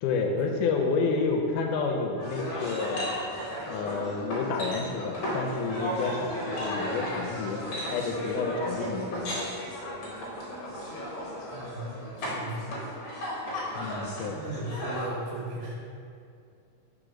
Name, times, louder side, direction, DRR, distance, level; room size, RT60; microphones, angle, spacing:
voice 1, 0.0-3.2 3.7-9.4 13.7-14.4, left 4 dB, 80° left, 2 dB, 1.9 m, -30 dB
sound 1, 2.2-15.1, equal, 60° left, 1.5 m, -35 dB
voice 2, 11.5-11.9 12.2-12.8 14.3-15.8, right 2 dB, 80° right, -3 dB, 2.1 m, -37 dB
5.1 x 4.5 x 4.9 m, 2.4 s
omnidirectional pair, 4.0 m